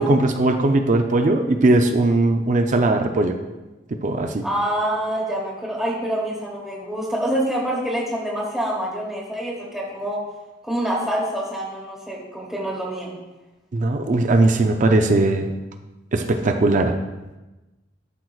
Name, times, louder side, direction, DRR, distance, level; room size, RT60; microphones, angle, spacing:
voice 1, 0.0-3.4 4.0-4.4 13.7-15.5 16.1-17.0, right 2 dB, 45° right, 6 dB, 0.5 m, -19 dB
voice 2, 4.4-10.2 10.6-13.1, right 1 dB, ahead, -4 dB, 1.0 m, -26 dB
11.5 x 4.6 x 2.4 m, 1.1 s
head